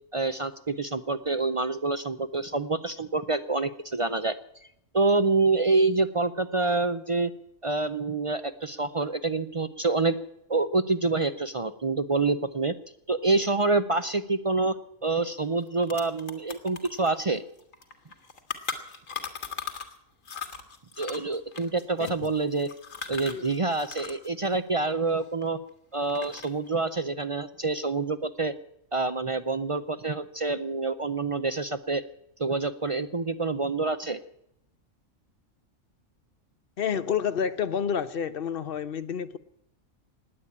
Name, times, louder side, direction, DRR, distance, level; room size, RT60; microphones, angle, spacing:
voice 1, 0.1-4.4 4.9-7.3 7.6-10.2 10.5-12.8 13.1-14.8 15.0-17.4 21.0-22.7 23.1-25.6 25.9-28.5 28.9-32.0 32.4-34.2, right 3 dB, 40° right, 0.5 m, -27 dB
sound 1, 15.2-15.3 15.6-20.0 20.2-24.3 24.5-25.7 26.0-26.7, left 6 dB, 90° left, 2.2 m, -38 dB
voice 2, 36.8-39.4, left 7 dB, 50° left, 1.0 m, -29 dB
20.0 x 8.4 x 8.6 m
omnidirectional pair, 1.3 m